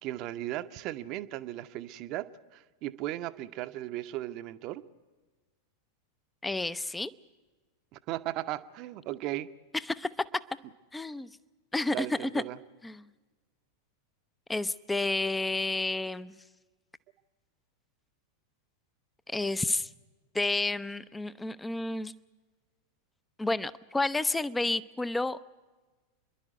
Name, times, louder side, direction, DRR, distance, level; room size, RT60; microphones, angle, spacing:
voice 1, 0.0-4.8 7.9-9.5 11.9-12.6, right 15 dB, 40° right, 12 dB, 0.8 m, -36 dB
voice 2, 6.4-7.1 9.9-10.3 10.9-11.3 11.7-12.4 12.8-13.1 14.5-16.4 19.3-19.9 20.3-22.1 23.4-25.4, left 2 dB, 10° left, 17 dB, 0.6 m, -30 dB
29.0 x 11.5 x 9.3 m, 1.3 s
figure-of-eight pair, 90°, 0 cm